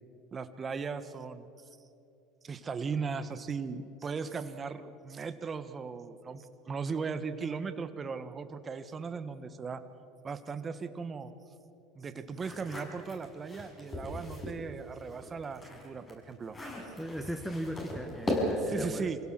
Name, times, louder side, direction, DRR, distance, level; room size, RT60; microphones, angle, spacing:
voice 1, 0.3-1.5 2.4-9.8 10.2-11.3 11.9-16.6 18.6-19.2, right 5 dB, 30° right, 11 dB, 1.5 m, -37 dB
sound 1, 12.3-14.6 15.0-18.8, left 1 dB, 25° left, 6.5 m, -37 dB
voice 2, 17.0-19.0, equal, ahead, 6 dB, 1.4 m, -38 dB
26.0 x 17.0 x 7.7 m, 2.8 s
supercardioid pair, 100°, 0 cm